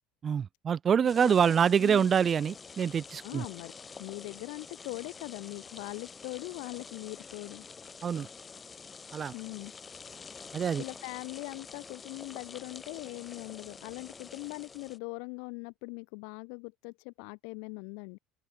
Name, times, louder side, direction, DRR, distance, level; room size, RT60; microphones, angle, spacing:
voice 1, 0.2-3.5 8.0-8.3 9.1-9.3 10.5-10.8, right 7 dB, 25° right, 0.6 m, -26 dB
sound 1, 1.1-15.0, left 5 dB, 20° left, 2.1 m, -48 dB
voice 2, 1.8-2.1 3.2-3.7 4.0-7.7 9.3-9.7 10.8-18.2, left 40 dB or more, 75° left, 3.5 m, -41 dB
cardioid pair, 150°, 0 cm